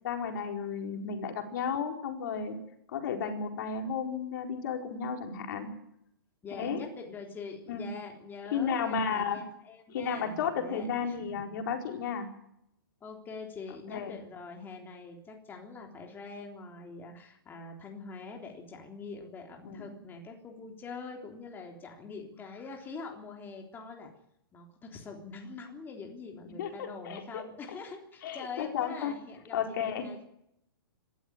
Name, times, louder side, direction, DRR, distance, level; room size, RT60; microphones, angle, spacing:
voice 1, 0.0-2.6 2.9-5.7 6.5-6.9 7.7-7.9 8.5-9.4 9.9-12.3 13.9-14.2 19.6-19.8 26.6-27.4 28.2-29.1 29.5-30.1, left 6 dB, 55° left, 4 dB, 4.6 m, -33 dB
voice 2, 6.4-11.4 13.0-24.1 24.5-30.3, left 4 dB, 15° left, 2 dB, 3.6 m, -44 dB
25.5 x 13.5 x 9.4 m, 0.77 s
hypercardioid pair, 140°, 12 cm